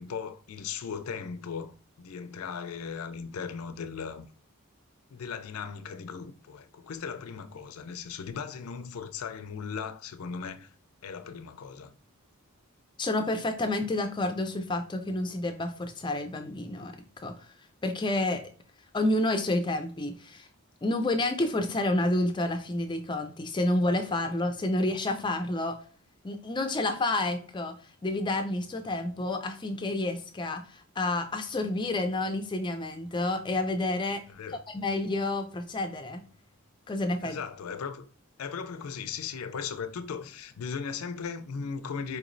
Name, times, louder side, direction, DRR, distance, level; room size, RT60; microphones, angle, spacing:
voice 1, 0.0-1.7 2.0-4.3 5.1-10.7 11.0-11.9 34.3-34.6 37.2-38.1 38.4-42.2, left 6 dB, 80° left, 0.4 m, -37 dB
voice 2, 13.0-17.3 17.8-18.4 18.9-20.5 20.8-25.8 26.2-27.7 28.0-34.2 34.7-36.3 36.9-37.4, left 2 dB, 20° left, 0.4 m, -29 dB
4.5 x 3.0 x 2.5 m
head